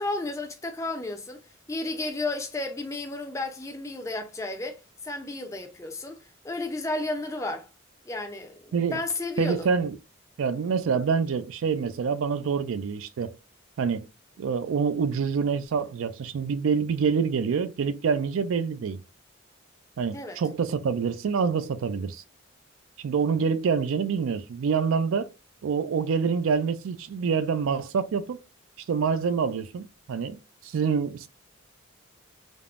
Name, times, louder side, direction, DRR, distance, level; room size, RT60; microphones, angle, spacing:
voice 1, 0.0-1.4 1.7-4.8 5.0-7.7 8.0-9.7 20.1-20.4, left 2 dB, 15° left, 0.4 m, -32 dB
voice 2, 9.4-10.0 10.4-13.3 13.8-14.1 14.4-19.0 20.0-22.2 23.0-25.3 25.6-28.4 28.9-30.4 30.6-31.3, right 6 dB, 80° right, 0.4 m, -26 dB
3.4 x 2.0 x 2.3 m
head